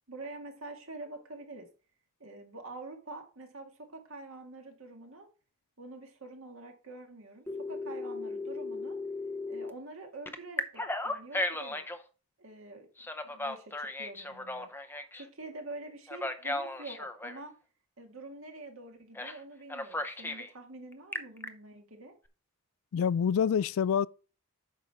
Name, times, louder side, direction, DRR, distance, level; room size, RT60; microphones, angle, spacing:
voice 1, 0.1-1.7 2.2-5.3 5.8-9.0 9.5-11.8 12.4-12.9 13.3-14.7 15.1-17.5 18.0-22.1, right 2 dB, 65° right, 1.9 m, -46 dB
Telephone, 7.5-9.7 10.3-12.0 13.0-15.2 16.1-17.4 19.2-19.4 19.7-20.5 20.9-21.5, left 2 dB, 10° left, 0.6 m, -36 dB
voice 2, 22.9-24.1, left 7 dB, 70° left, 0.3 m, -26 dB
8.8 x 6.1 x 3.4 m
head